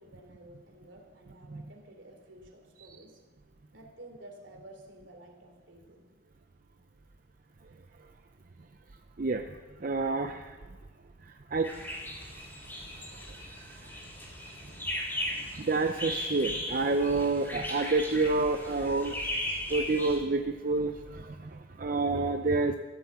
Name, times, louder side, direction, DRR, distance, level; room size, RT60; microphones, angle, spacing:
voice 1, 0.0-3.2 3.7-6.1, right 1 dB, 75° right, 3 dB, 3.1 m, -52 dB
voice 2, 9.8-10.6 11.3-11.7 13.1-13.9 15.3-19.2 19.7-22.8, right 3 dB, 45° right, 6 dB, 0.6 m, -29 dB
sound 1, 11.6-20.2, left 1 dB, 10° left, 3.4 m, -37 dB
14.0 x 11.5 x 7.2 m, 1.3 s
head